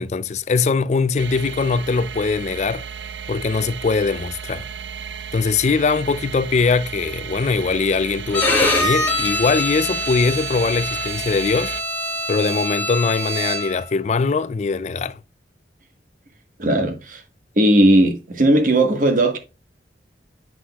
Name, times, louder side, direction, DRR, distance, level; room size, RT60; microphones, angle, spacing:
voice 1, 0.0-2.9 3.3-4.6 5.3-11.7 12.3-15.2, left 4 dB, 40° left, 0.3 m, -21 dB
sound 1, 1.2-11.8, right 7 dB, 85° right, 0.5 m, -34 dB
Bowed string instrument, 8.3-13.9, left 1 dB, 10° left, 1.4 m, -24 dB
voice 2, 16.6-17.2 17.6-19.4, right 1 dB, 50° right, 1.3 m, -17 dB
7.7 x 6.0 x 2.3 m
head